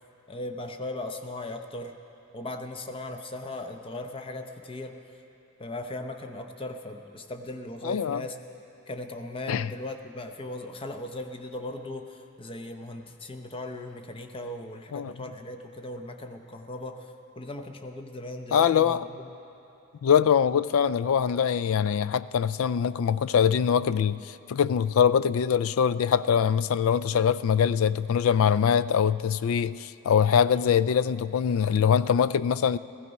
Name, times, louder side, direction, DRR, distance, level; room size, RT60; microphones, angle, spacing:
voice 1, 0.3-2.0 2.3-5.2 5.6-8.4 8.9-19.3 30.5-30.7, left 1 dB, 25° left, 0.7 m, -38 dB
voice 2, 7.8-8.2 9.5-9.7 14.9-15.1 18.5-19.0 20.0-32.8, left 7 dB, 65° left, 0.3 m, -23 dB
15.5 x 15.5 x 5.4 m
head